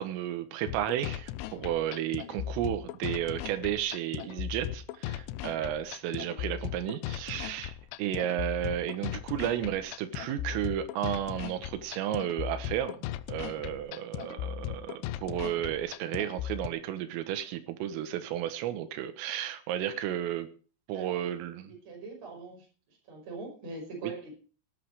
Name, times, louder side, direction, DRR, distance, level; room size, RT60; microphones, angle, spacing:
voice 1, 0.0-20.5 20.9-21.7 24.0-24.1, right 11 dB, 85° right, 9 dB, 3.9 m, -33 dB
sound 1, 0.7-16.7, left 12 dB, 80° left, 3.1 m, -38 dB
voice 2, 6.1-6.5 20.9-22.7 23.1-24.3, right 3 dB, 35° right, 0 dB, 6.3 m, -43 dB
18.5 x 11.0 x 4.8 m, 0.39 s
omnidirectional pair, 5.7 m